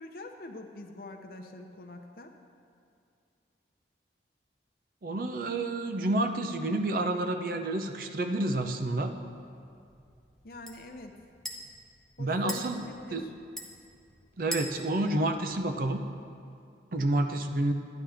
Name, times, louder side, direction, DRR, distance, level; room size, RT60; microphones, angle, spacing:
voice 1, 0.0-2.3 10.4-11.1 12.2-13.3, left 2 dB, 55° left, 4 dB, 0.7 m, -44 dB
voice 2, 5.0-9.2 12.2-12.8 13.1-13.3 14.4-16.0 16.9-17.7, right 2 dB, 50° right, 6 dB, 0.6 m, -29 dB
sound 1, 8.4-16.2, equal, 5° left, 0.7 m, -45 dB
12.0 x 10.0 x 3.4 m, 2.4 s
head